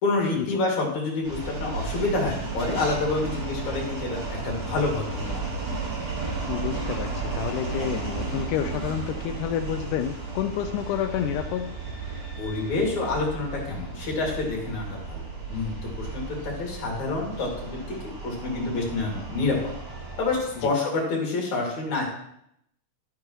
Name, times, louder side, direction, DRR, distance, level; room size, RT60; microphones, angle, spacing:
voice 1, 0.0-5.4 12.4-15.2 15.5-19.6 20.2-22.0, left 3 dB, 65° left, -2 dB, 3.8 m, -28 dB
sound 1, 1.2-20.7, right 3 dB, 30° right, 2.6 m, -34 dB
voice 2, 6.5-11.7 20.6-20.7, left 10 dB, 80° left, 7 dB, 2.0 m, -29 dB
13.0 x 8.9 x 3.1 m, 0.74 s
omnidirectional pair, 3.7 m